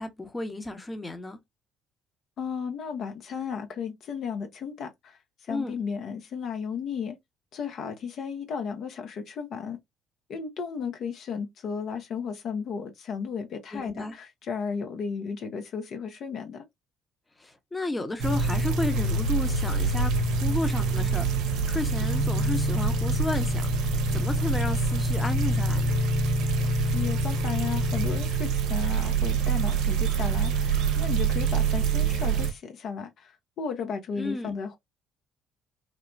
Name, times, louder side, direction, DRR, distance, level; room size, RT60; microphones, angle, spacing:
voice 1, 0.0-1.4 5.5-5.7 13.7-14.1 17.4-20.1 20.4-26.0 34.2-34.5, left 2 dB, 20° left, 0.7 m, -33 dB
voice 2, 2.4-7.2 7.5-9.8 10.3-16.6 26.6-34.8, left 6 dB, 60° left, 0.6 m, -34 dB
sound 1, 18.2-32.5, right 3 dB, 70° right, 0.6 m, -25 dB
3.1 x 2.1 x 2.5 m
hypercardioid pair, 60°, 0 cm